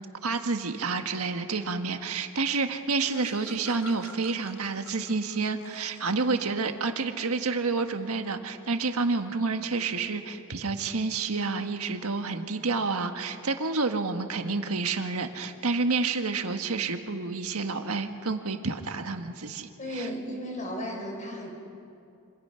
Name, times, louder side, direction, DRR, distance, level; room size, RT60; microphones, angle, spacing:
voice 1, 0.2-20.1, right 4 dB, 80° right, 6 dB, 1.5 m, -29 dB
Laughter, 2.4-2.5 2.7-6.3, left 3 dB, 75° left, 2.5 m, -48 dB
voice 2, 19.8-21.5, equal, 35° left, 1 dB, 5.4 m, -35 dB
26.5 x 25.5 x 5.8 m, 2.5 s
head